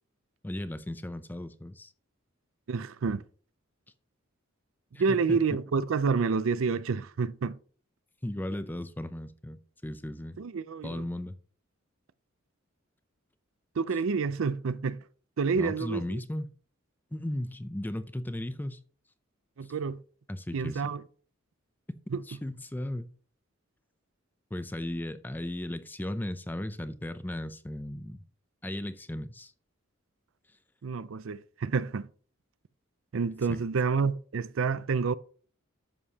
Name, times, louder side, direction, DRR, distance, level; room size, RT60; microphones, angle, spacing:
voice 1, 0.4-1.9 4.9-5.4 8.2-9.6 9.8-10.4 10.8-11.3 15.6-16.5 17.1-18.8 20.3-20.9 22.3-23.1 24.5-28.2 28.6-29.5 33.5-33.6, left 1 dB, 10° left, 0.5 m, -36 dB
voice 2, 2.7-3.2 5.0-7.5 10.4-11.1 13.8-15.0 15.4-16.2 19.6-20.0 20.5-21.0 22.1-22.2 30.8-32.1 33.1-35.1, right 5 dB, 70° right, 0.5 m, -28 dB
11.0 x 7.2 x 2.8 m
head